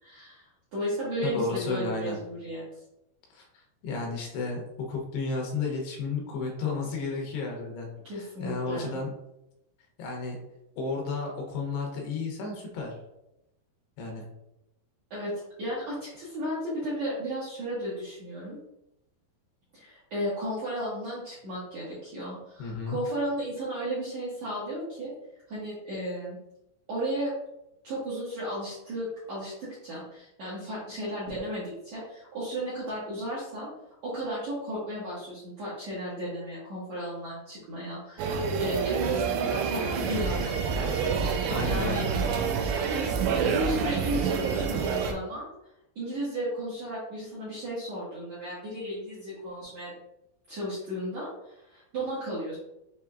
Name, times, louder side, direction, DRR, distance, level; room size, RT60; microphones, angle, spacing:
voice 1, 0.0-2.7 8.0-9.0 15.1-15.3 15.6-18.6 19.7-25.1 25.5-26.4 26.9-27.3 27.8-33.7 34.0-41.0 41.6-42.1 43.4-45.5 46.0-49.9 50.5-52.6, equal, 70° right, -9 dB, 1.7 m, -34 dB
voice 2, 1.2-2.2 3.3-7.9 8.1-9.1 10.0-10.4 10.8-13.0 14.0-14.3 22.6-23.0 41.5-42.1, left 3 dB, 75° left, 0 dB, 2.7 m, -32 dB
sound 1, 38.2-45.1, right 6 dB, 85° right, 2.7 m, -28 dB
7.0 x 2.9 x 2.3 m, 0.88 s
omnidirectional pair, 5.0 m